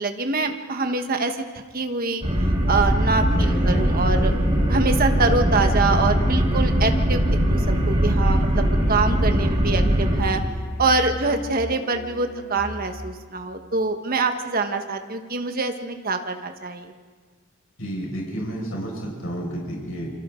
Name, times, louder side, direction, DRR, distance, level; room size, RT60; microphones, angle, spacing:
voice 1, 0.0-1.4 1.7-2.2 2.7-4.3 4.7-10.4 10.8-16.9, right 3 dB, 45° right, 6 dB, 1.4 m, -25 dB
sound 1, 2.2-10.2, equal, 30° right, 4.2 m, -20 dB
voice 2, 3.3-3.9 17.8-20.1, equal, 85° left, -2 dB, 5.7 m, -31 dB
Musical instrument, 3.3-13.2, equal, 40° left, 2.2 m, -35 dB
27.5 x 24.5 x 3.8 m, 1.5 s
head